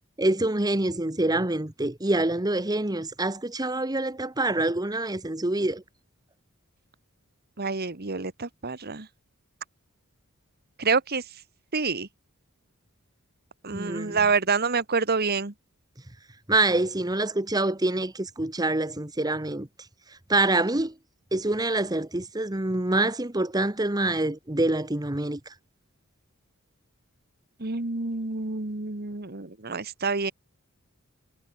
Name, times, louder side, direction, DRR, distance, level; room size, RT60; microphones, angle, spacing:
voice 1, 0.2-5.8 13.7-14.2 16.5-19.7 20.3-20.9 21.3-25.4, right 2 dB, 20° right, 1.3 m, -26 dB
voice 2, 7.6-9.1 10.8-11.2 11.7-12.1 13.6-15.5 27.6-30.3, right 4 dB, 50° right, 1.7 m, -27 dB
head